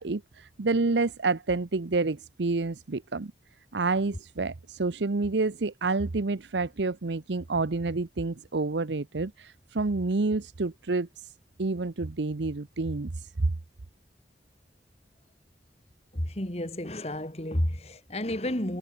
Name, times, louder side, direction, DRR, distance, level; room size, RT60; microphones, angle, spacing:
voice 1, 0.0-3.3 3.7-11.3 11.6-13.5, right 3 dB, 90° right, 0.8 m, -29 dB
voice 2, 16.1-18.8, left 1 dB, 35° left, 3.0 m, -31 dB
head